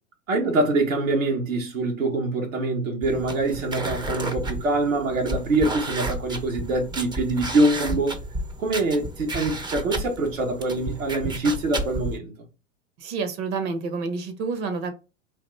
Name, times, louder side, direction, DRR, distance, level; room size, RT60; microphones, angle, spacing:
voice 1, 0.3-8.2 8.6-12.3, right 2 dB, 80° right, 1.4 m, -24 dB
sound 1, 3.0-12.2, right 2 dB, 10° right, 0.5 m, -32 dB
voice 2, 13.0-14.9, right 4 dB, 55° right, 1.1 m, -29 dB
4.0 x 2.6 x 3.2 m
hypercardioid pair, 100°, 39 cm